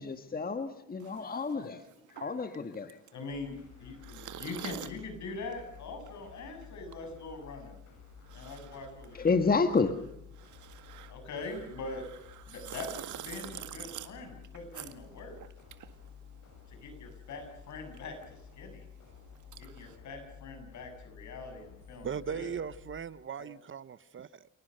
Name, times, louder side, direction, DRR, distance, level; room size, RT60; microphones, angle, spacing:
voice 1, 0.0-1.8 2.1-3.0 9.1-9.9, left 4 dB, 30° left, 1.6 m, -29 dB
sound 1, 1.0-16.8 17.1-20.0, right 11 dB, 75° right, 1.9 m, -48 dB
voice 2, 3.1-7.8 8.3-9.3 11.1-12.0 12.5-15.3 16.7-18.9 19.6-22.5 23.4-23.5, left 3 dB, 70° left, 7.6 m, -43 dB
sound 2, 3.3-23.0, left 8 dB, 85° left, 7.5 m, -53 dB
voice 3, 22.0-24.5, right 7 dB, 40° right, 0.9 m, -38 dB
29.0 x 19.5 x 6.6 m
cardioid pair, 90°, 30 cm